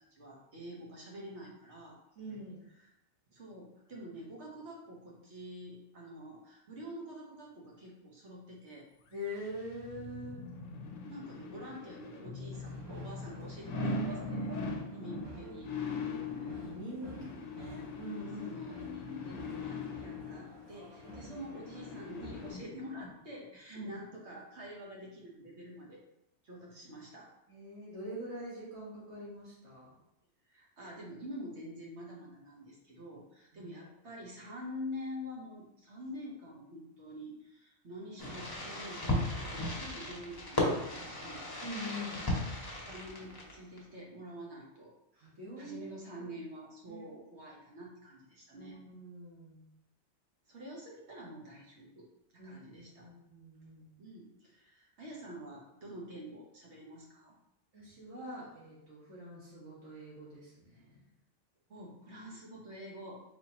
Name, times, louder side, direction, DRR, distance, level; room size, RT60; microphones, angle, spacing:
voice 1, 0.1-2.0 2.8-2.9 3.3-8.9 11.1-14.5 14.9-15.7 17.1-17.3 18.4-26.0 26.4-27.3 30.5-41.6 42.9-44.9 45.6-48.8 50.5-52.1 52.4-53.1 54.0-57.3 61.7-63.2, equal, 70° right, -2 dB, 1.4 m, -47 dB
voice 2, 2.2-2.6 9.1-10.4 15.4-15.6 15.9-17.1 17.6-18.6 21.2-21.4 23.7-24.0 27.5-29.9 33.5-33.7 41.6-42.2 45.1-45.9 46.9-47.0 48.6-49.7 52.4-54.0 57.7-61.0, equal, 90° right, -7 dB, 1.9 m, -44 dB
sound 1, 9.2-23.1 23.5-23.6, left 3 dB, 80° left, 0.9 m, -41 dB
sound 2, 12.5-22.5, right 1 dB, 25° right, 0.6 m, -51 dB
Fireworks, 38.2-43.8, left 1 dB, 20° left, 0.8 m, -35 dB
4.4 x 3.4 x 2.9 m, 0.85 s
omnidirectional pair, 1.2 m